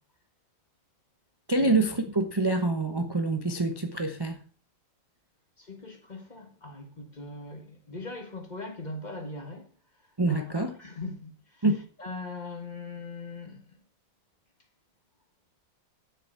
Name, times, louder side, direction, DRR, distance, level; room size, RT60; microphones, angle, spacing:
voice 1, 1.5-4.4 10.2-10.7 11.6-11.8, right 2 dB, 20° right, 0.6 m, -26 dB
voice 2, 5.6-9.7 10.3-10.5 10.8-11.6 12.0-13.8, left 3 dB, 25° left, 1.6 m, -40 dB
8.0 x 6.5 x 8.1 m
omnidirectional pair, 2.0 m